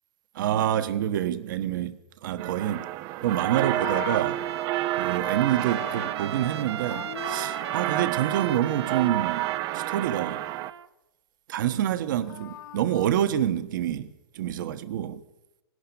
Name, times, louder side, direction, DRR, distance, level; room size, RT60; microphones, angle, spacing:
voice 1, 0.3-2.0 2.2-2.9 3.2-4.5 5.0-10.4 11.5-14.1 14.3-15.2, right 11 dB, 50° right, 1.3 m, -27 dB
sound 1, 2.4-10.7, right 16 dB, 25° right, 0.6 m, -30 dB
Livestock farm animals working animals, 3.1-6.5 6.8-8.1 11.9-13.1, left 11 dB, 60° left, 2.1 m, -42 dB
Trumpet, 3.3-10.9, right 9 dB, 85° right, 0.7 m, -38 dB
20.5 x 18.5 x 7.0 m
hypercardioid pair, 155°, 13 cm